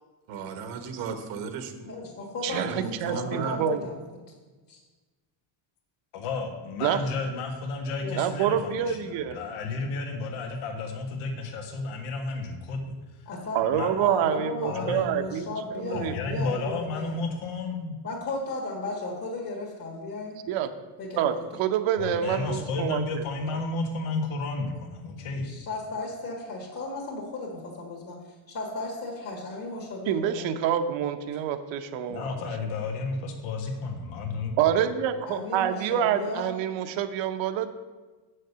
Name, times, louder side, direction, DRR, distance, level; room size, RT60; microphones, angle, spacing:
voice 1, 0.3-1.9 2.5-3.6, right 6 dB, 85° right, 7 dB, 1.4 m, -35 dB
voice 2, 1.8-4.0 4.7-4.8 8.0-8.2 13.3-13.6 13.9-17.2 18.0-20.4 21.0-21.3 25.4-28.2 28.5-30.5 35.2-36.5, left 2 dB, 45° left, -1 dB, 2.0 m, -35 dB
voice 3, 2.4-3.9 6.8-7.0 8.2-9.4 13.5-16.4 20.5-20.7 21.1-23.6 30.1-32.3 34.6-37.7, right 9 dB, 65° right, 9 dB, 0.9 m, -27 dB
voice 4, 6.1-12.9 13.7-13.9 14.6-15.0 15.9-17.9 22.0-25.5 32.1-34.5, left 3 dB, 80° left, 4 dB, 1.7 m, -32 dB
8.1 x 6.5 x 6.8 m, 1.3 s
cardioid pair, 180°, 49 cm